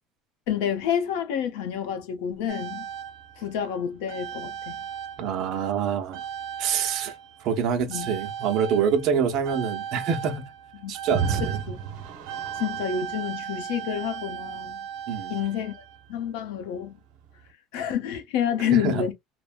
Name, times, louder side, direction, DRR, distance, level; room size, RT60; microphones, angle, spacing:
voice 1, 0.5-2.9 3.4-4.8 7.9-8.1 10.8-10.9 11.7-11.8 12.5-14.9 15.3-15.8 16.1-17.0 17.7-19.1, left 8 dB, 85° left, 0.9 m, -28 dB
sound 1, 2.5-5.8 6.1-16.2 17.2-17.3, right 8 dB, 65° right, 0.9 m, -35 dB
voice 2, 5.2-6.2 6.6-7.1 7.4-10.5 10.9-11.6 15.1-15.3 18.7-19.1, right 7 dB, 45° right, 0.7 m, -26 dB
3.2 x 2.1 x 2.4 m
cardioid pair, 170°, 0 cm